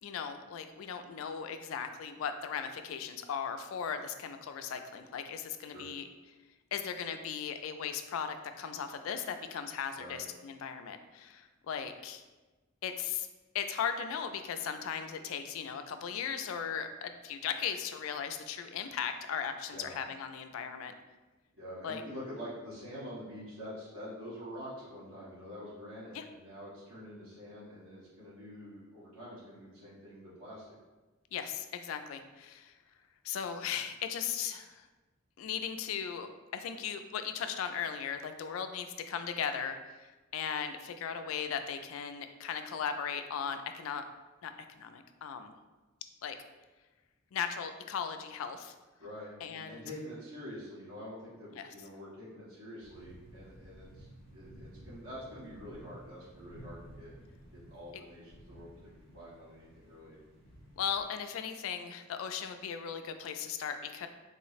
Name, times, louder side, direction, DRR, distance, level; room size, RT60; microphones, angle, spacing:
voice 1, 0.0-6.1 6.7-12.2 12.8-13.3 13.5-20.9 21.8-22.0 26.1-26.3 31.3-32.7 33.2-34.9 35.4-44.0 44.4-45.5 46.2-46.4 47.3-48.7 49.4-49.8 51.5-51.7 60.8-64.1, left 7 dB, 80° left, 8 dB, 0.3 m, -37 dB
voice 2, 21.5-30.7 49.0-54.1 54.3-57.1 57.5-60.2, equal, 85° right, -9 dB, 1.4 m, -46 dB
sound 1, 52.8-61.1, right 1 dB, 70° right, 1.4 m, -54 dB
3.6 x 2.0 x 4.0 m, 1.2 s
head